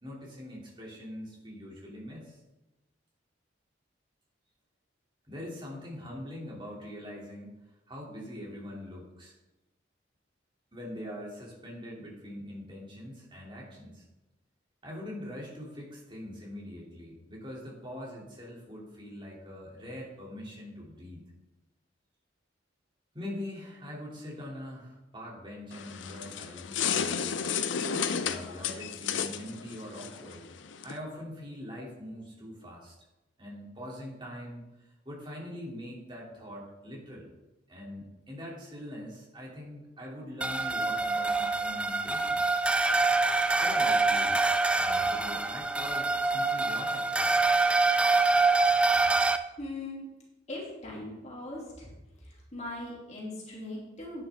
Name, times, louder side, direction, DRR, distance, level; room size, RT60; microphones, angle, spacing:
voice 1, 0.0-2.4 5.3-7.6 7.9-9.3 10.7-14.0 14.8-21.2 23.1-27.4 28.2-30.5 30.8-32.9 33.4-37.3 37.7-42.5 43.6-44.4 44.7-47.4, left 1 dB, 25° right, -3 dB, 2.7 m, -43 dB
sound 1, 25.7-31.0, left 7 dB, 90° left, 0.6 m, -33 dB
sound 2, 40.4-49.4, right 3 dB, 5° right, 0.3 m, -25 dB
voice 2, 49.6-50.1 50.5-51.9 52.2-54.2, left 1 dB, 35° left, -4 dB, 2.7 m, -40 dB
10.5 x 9.7 x 3.5 m, 1.0 s
head